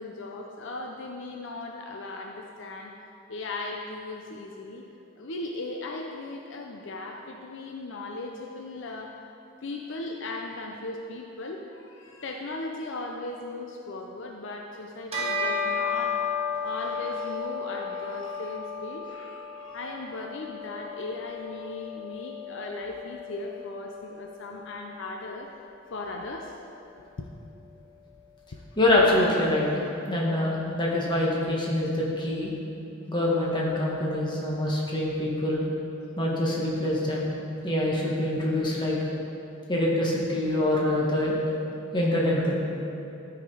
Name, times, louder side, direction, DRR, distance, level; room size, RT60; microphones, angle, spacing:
voice 1, 0.0-2.9 3.3-4.8 5.2-9.2 9.6-16.2 16.6-25.5 25.9-26.5 27.0-27.3, left 2 dB, 65° left, 1 dB, 0.6 m, -37 dB
Bell, 15.1-24.8, left 4 dB, 30° right, 1.4 m, -34 dB
voice 2, 28.8-29.7 30.1-32.5 33.1-35.7 36.2-37.3 37.6-38.9 39.7-41.4 41.9-42.5, left 1 dB, 25° left, -4 dB, 1.6 m, -25 dB
12.5 x 5.0 x 4.9 m, 2.8 s
head